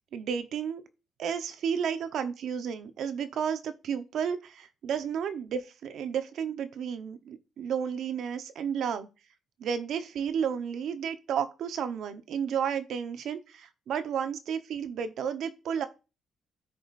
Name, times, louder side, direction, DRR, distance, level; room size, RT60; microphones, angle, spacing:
voice 1, 0.1-0.8 1.2-9.1 9.6-15.8, right 7 dB, 70° right, 1.1 m, -32 dB
13.0 x 5.0 x 2.6 m
cardioid pair, 90°, 0 cm